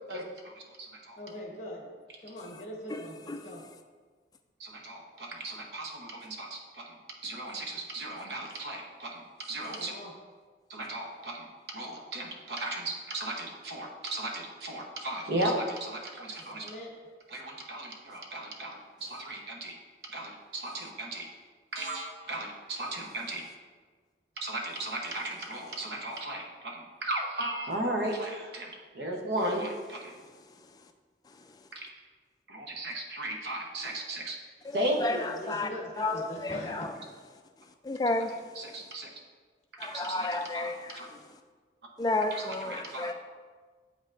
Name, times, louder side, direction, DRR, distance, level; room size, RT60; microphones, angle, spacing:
voice 1, 1.2-1.9 2.2-3.6 9.6-10.1 16.5-16.9 34.8-36.9, equal, 40° left, -1 dB, 1.1 m, -41 dB
voice 2, 2.9-3.4 31.3-31.6 34.6-35.7 36.0-37.0 37.8-38.3 38.8-38.9 39.8-41.2 42.0-43.1, left 2 dB, 20° left, 6 dB, 0.3 m, -32 dB
voice 3, 4.6-7.0 7.2-9.9 10.7-16.7 17.3-19.8 20.1-21.3 21.7-23.4 24.4-30.1 31.7-31.9 32.5-34.4 34.7-35.0 38.6-39.1 39.8-40.3 40.5-41.0 42.3-43.1, right 1 dB, 70° right, 1 dB, 0.9 m, -36 dB
7.8 x 5.3 x 2.5 m, 1.5 s
head